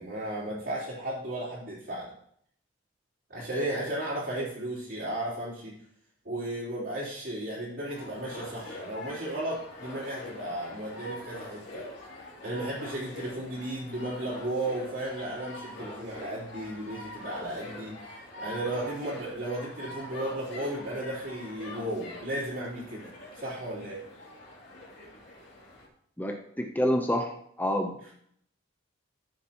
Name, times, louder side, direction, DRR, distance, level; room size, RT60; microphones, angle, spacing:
voice 1, 0.0-2.1 3.3-5.7 6.2-11.8 12.4-24.0, right 1 dB, 55° right, -12 dB, 4.0 m, -34 dB
sound 1, 7.9-25.9, left 1 dB, 55° left, 3.2 m, -44 dB
voice 2, 26.2-27.3 27.6-28.1, equal, 10° left, 3 dB, 0.8 m, -28 dB
14.0 x 7.1 x 3.0 m, 0.66 s
head